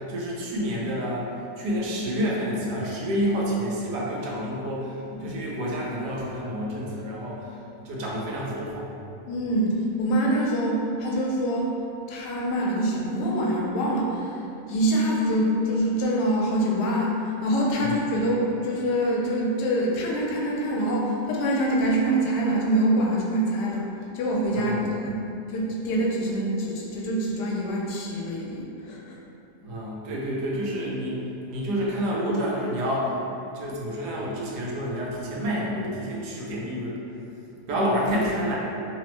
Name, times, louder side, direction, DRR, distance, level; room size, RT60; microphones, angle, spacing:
voice 1, 0.1-1.3 1.6-7.6 7.8-8.9 17.8-17.9 24.5-24.9 29.6-33.1 33.5-37.0 37.7-38.6, equal, 85° right, -4 dB, 1.2 m, -29 dB
voice 2, 9.3-11.7 12.1-14.4 14.7-23.9 24.1-25.2 25.5-29.2, right 1 dB, 90° left, -3 dB, 1.2 m, -25 dB
3.0 x 2.0 x 2.9 m, 2.8 s
omnidirectional pair, 1.7 m